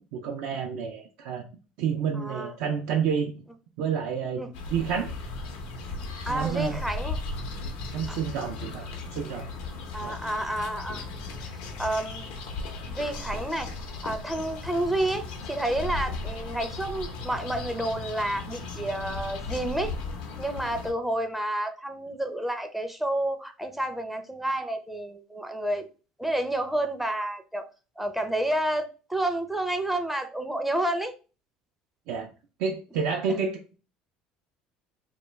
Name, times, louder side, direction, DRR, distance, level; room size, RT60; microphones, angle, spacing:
voice 1, 0.1-1.4 1.8-3.3 3.8-5.1 6.3-6.8 7.9-9.5 10.0-10.2 32.1-32.3 32.6-33.8, right 6 dB, 75° right, 2 dB, 0.4 m, -29 dB
voice 2, 2.2-2.5 4.4-4.5 6.3-7.2 8.1-8.2 9.9-11.1 11.4-11.5 11.8-12.3 12.9-13.7 14.0-19.9 20.4-25.9 26.2-27.6 28.0-31.1 33.3-33.4, right 1 dB, 5° right, 7 dB, 0.4 m, -30 dB
sound 1, 4.5-20.9, left 3 dB, 85° left, 0.6 m, -36 dB
2.3 x 2.3 x 3.1 m, 0.34 s
supercardioid pair, 95°, 3 cm